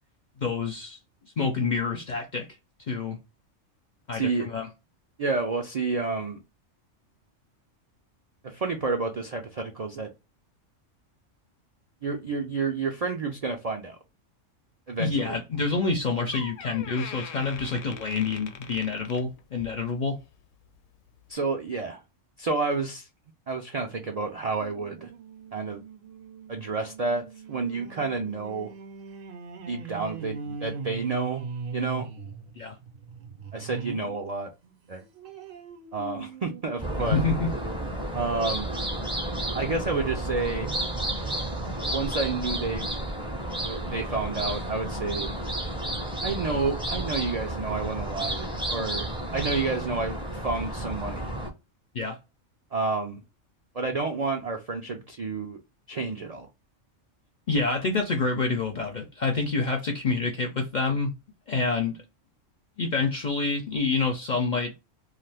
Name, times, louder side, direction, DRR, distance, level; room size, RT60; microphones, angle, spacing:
voice 1, 0.4-1.0 1.4-2.5 2.9-3.2 4.1-4.7 15.0-20.2 32.6-32.7 37.1-37.5 51.9-52.2 57.5-61.1 61.5-62.0 62.8-64.7, left 4 dB, 55° left, 0.5 m, -27 dB
voice 2, 4.1-4.5 5.2-6.4 8.4-10.1 12.0-14.0 14.9-15.4 21.3-22.0 22.4-23.1 23.5-25.1 25.5-25.8 26.5-28.7 29.7-31.5 31.7-32.1 33.5-34.5 34.9-35.0 35.9-37.2 38.1-38.7 39.5-40.7 41.9-43.1 43.6-45.3 46.2-51.3 52.7-53.2 53.7-55.6 55.9-56.5, right 4 dB, 70° right, 0.3 m, -30 dB
Door, 15.9-16.0 16.3-19.8 20.2-20.5 21.2-21.3, left 8 dB, 80° left, 1.0 m, -42 dB
sound 1, 24.6-34.2 34.6-37.7 38.2-38.3 38.6-38.7, right 5 dB, 55° right, 0.7 m, -40 dB
sound 2, 36.8-51.5, right 1 dB, 5° right, 0.5 m, -32 dB
2.5 x 2.4 x 3.3 m
omnidirectional pair, 1.3 m